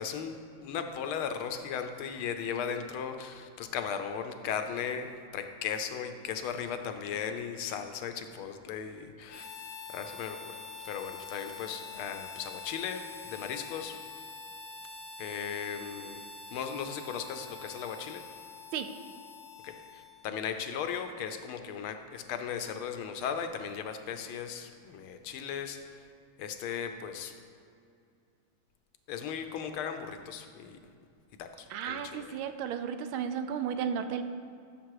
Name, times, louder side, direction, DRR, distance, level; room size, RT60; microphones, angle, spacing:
voice 1, 0.0-9.5 9.9-10.4 10.8-14.0 15.2-16.2 16.5-18.2 19.6-26.1 26.4-27.4 29.1-30.8 31.4-32.4, left 7 dB, 85° left, 7 dB, 1.6 m, -37 dB
Harmonica, 9.3-20.4, left 4 dB, 60° left, 0.6 m, -46 dB
voice 2, 31.7-34.3, right 7 dB, 80° right, 9 dB, 1.5 m, -33 dB
13.0 x 6.8 x 4.8 m, 2.4 s
omnidirectional pair, 2.3 m